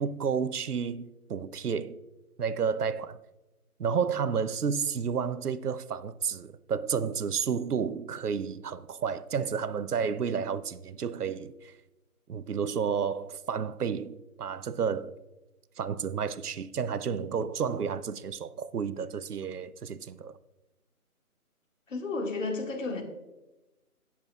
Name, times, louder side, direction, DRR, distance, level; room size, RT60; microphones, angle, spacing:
voice 1, 0.0-2.0 2.4-3.2 3.8-11.7 12.3-15.2 15.8-20.4, right 6 dB, 85° right, 0.7 m, -31 dB
voice 2, 21.9-23.0, left 3 dB, 55° left, 2.0 m, -32 dB
17.0 x 7.2 x 2.4 m
figure-of-eight pair, 155°, 45 cm